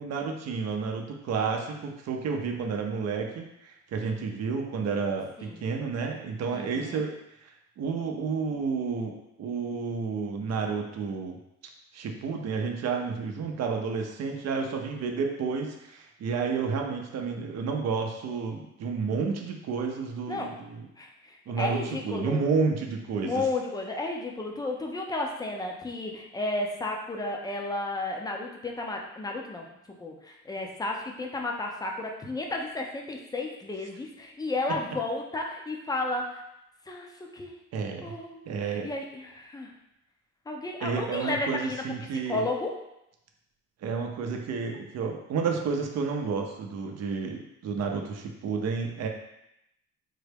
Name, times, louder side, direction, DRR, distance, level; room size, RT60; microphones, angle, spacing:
voice 1, 0.0-7.1 7.4-11.4 11.9-20.8 21.5-23.4 37.7-38.1 38.5-38.9 40.8-42.4 43.8-49.1, right 5 dB, 60° right, 3 dB, 0.6 m, -31 dB
voice 2, 6.5-7.0 20.3-20.5 21.0-22.4 23.2-29.7 30.0-36.4 36.9-37.5 38.0-39.7 40.5-41.8 42.3-42.8 44.7-44.8, left 2 dB, 15° left, 1 dB, 0.5 m, -33 dB
3.7 x 2.1 x 3.4 m, 0.84 s
cardioid pair, 90°, 30 cm